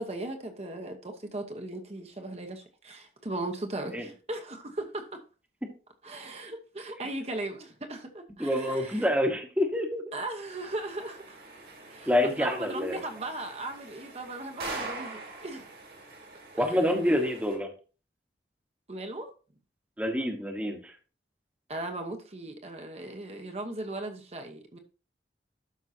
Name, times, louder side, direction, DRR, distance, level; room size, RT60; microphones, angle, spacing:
voice 1, 0.0-5.2 6.0-9.1 10.1-11.4 11.9-15.7 16.5-17.2 18.9-19.3 21.7-24.8, right 2 dB, 35° right, 1.0 m, -38 dB
voice 2, 8.4-10.1 12.1-13.0 16.6-17.7 20.0-20.9, left 1 dB, 10° right, 1.1 m, -27 dB
sound 1, 10.4-17.5, right 2 dB, 65° right, 2.6 m, -44 dB
12.5 x 5.5 x 2.8 m
head